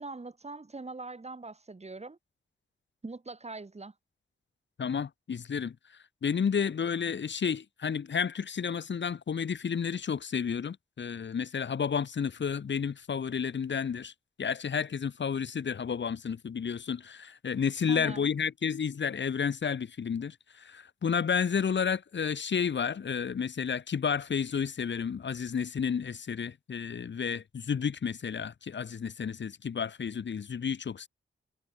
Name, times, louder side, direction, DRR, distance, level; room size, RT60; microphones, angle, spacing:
voice 1, 0.0-2.2 3.0-3.9 17.9-18.3, right 3 dB, 30° right, 2.2 m, -42 dB
voice 2, 4.8-5.7 6.2-14.1 14.4-31.1, left 6 dB, 60° left, 1.3 m, -31 dB
cardioid pair, 50°, 21 cm